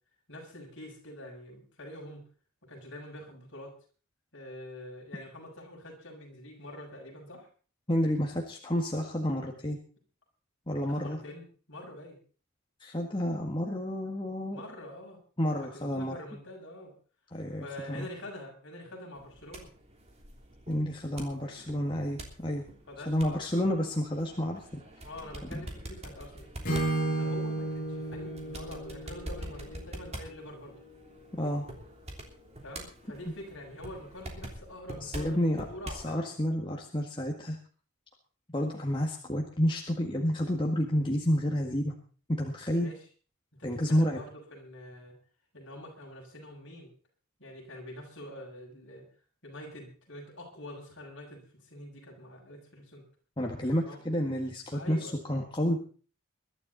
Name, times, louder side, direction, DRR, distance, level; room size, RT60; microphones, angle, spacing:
voice 1, 0.3-2.2 2.6-3.8 4.3-7.5 10.8-12.2 14.5-16.9 17.6-19.7 22.9-23.6 25.0-26.5 27.0-30.8 32.6-35.4 35.7-36.3 42.7-43.0 43.6-45.1 45.5-46.9 47.4-49.1 49.4-53.0 53.9-54.0 54.7-55.2, left 1 dB, 55° left, -1 dB, 6.9 m, -45 dB
voice 2, 7.9-9.8 10.7-11.2 12.8-14.6 15.4-16.1 17.3-18.1 20.7-22.7 23.0-24.8 25.5-25.6 31.3-31.6 35.0-35.6 35.9-37.6 38.5-41.9 42.3-42.9 43.6-44.2 53.4-55.8, equal, 20° left, 1 dB, 1.8 m, -30 dB
sound 1, 19.1-36.1, right 1 dB, 30° right, 3.2 m, -46 dB
Acoustic guitar / Strum, 26.6-30.6, right 2 dB, 40° left, 7.6 m, -33 dB
22.0 x 12.0 x 4.1 m, 0.39 s
head